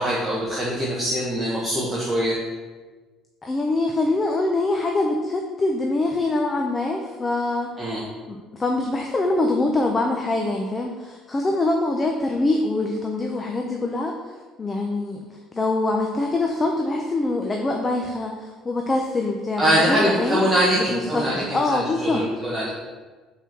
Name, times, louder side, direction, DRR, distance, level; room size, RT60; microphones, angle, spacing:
voice 1, 0.0-2.3 7.8-8.0 19.6-22.7, equal, 10° right, -7 dB, 1.2 m, -23 dB
voice 2, 3.4-7.7 8.3-22.2, left 2 dB, 20° left, 2 dB, 0.6 m, -24 dB
5.6 x 4.5 x 6.0 m, 1.3 s
cardioid pair, 140°, 0 cm